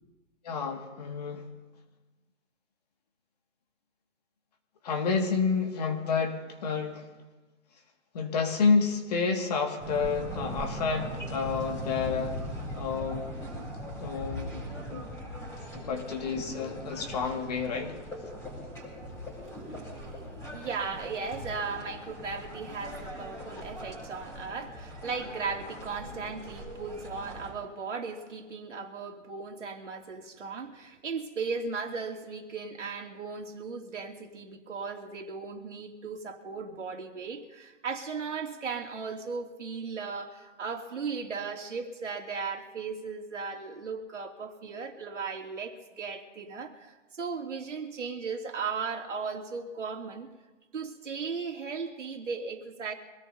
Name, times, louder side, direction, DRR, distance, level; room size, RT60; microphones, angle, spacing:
voice 1, 0.4-1.5 4.8-7.1 8.1-12.4 12.7-13.3 14.0-14.6 14.9-15.0 15.7-18.0, left 5 dB, 30° left, 3 dB, 2.1 m, -29 dB
sound 1, 9.8-27.5, equal, 5° left, 4.2 m, -40 dB
voice 2, 19.7-50.3 50.7-52.9, right 5 dB, 70° right, 1 dB, 2.8 m, -37 dB
25.5 x 17.5 x 2.8 m, 1.2 s
hypercardioid pair, 160°, 38 cm